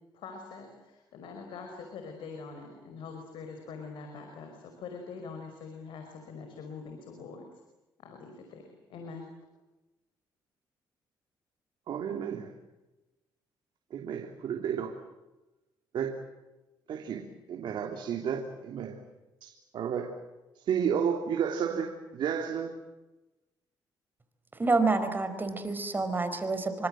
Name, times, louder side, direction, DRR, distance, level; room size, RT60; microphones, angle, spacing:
voice 1, 0.1-7.5 8.0-8.6 8.9-9.3, left 4 dB, 80° left, 5 dB, 5.4 m, -44 dB
voice 2, 11.9-12.5 13.9-15.0 15.9-16.2 16.9-19.0 19.4-20.1 20.5-22.7, right 7 dB, 70° right, 3 dB, 3.4 m, -32 dB
voice 3, 24.6-26.9, right 3 dB, 25° right, 9 dB, 4.7 m, -28 dB
28.0 x 25.5 x 7.8 m, 1.0 s
cardioid pair, 90°, 8 cm